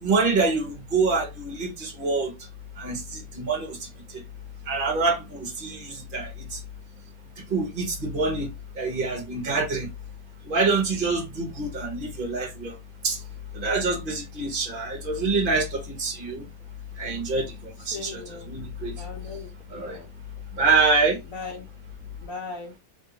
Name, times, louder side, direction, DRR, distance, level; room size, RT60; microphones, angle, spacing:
voice 1, 0.0-2.3 2.8-3.9 4.1-4.2 4.7-6.6 7.5-8.5 8.8-9.9 10.5-12.7 13.0-13.2 13.5-16.5 17.0-18.9 19.7-20.0 20.6-21.2, right 3 dB, 35° right, 1.1 m, -26 dB
voice 2, 17.9-18.5 19.0-20.1 21.3-21.6 22.2-22.7, left 4 dB, 55° left, 1.0 m, -38 dB
3.1 x 2.6 x 2.9 m
omnidirectional pair, 2.0 m